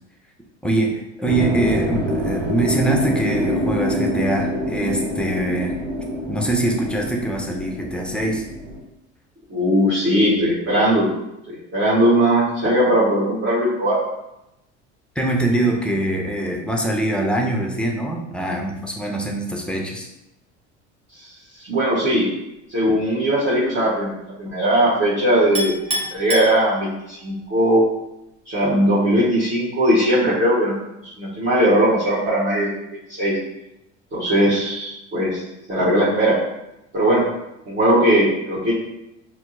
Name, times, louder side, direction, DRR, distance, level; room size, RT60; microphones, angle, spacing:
voice 1, 0.6-5.8 6.3-8.4 15.2-20.1, right 1 dB, 5° left, 0 dB, 0.5 m, -23 dB
sound 1, 1.2-8.8, equal, 85° right, 0.9 m, -25 dB
voice 2, 9.5-11.1 11.5-14.0 21.2-21.3 21.7-22.3 22.7-24.1 24.4-27.8 28.5-30.7 31.0-32.7 33.1-33.3 34.1-35.4 35.7-36.4 36.9-37.2 37.6-38.7, right 1 dB, 35° right, -10 dB, 1.3 m, -19 dB
Chink clink, 25.6-27.2, equal, 15° right, 0.9 m, -28 dB
4.3 x 2.0 x 2.6 m, 0.88 s
hypercardioid pair, 80°, 35 cm